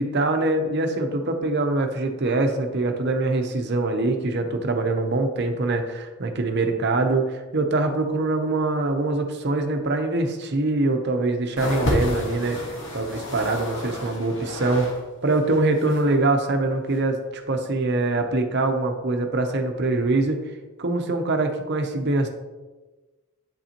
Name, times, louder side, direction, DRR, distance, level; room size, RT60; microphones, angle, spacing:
voice 1, 0.0-14.9 15.2-20.4 20.8-22.3, right 2 dB, 50° right, 5 dB, 0.7 m, -24 dB
sound 1, 11.6-15.0 15.3-16.2 16.9-17.0, left 1 dB, 65° left, 1.4 m, -30 dB
8.8 x 5.4 x 2.9 m, 1.2 s
head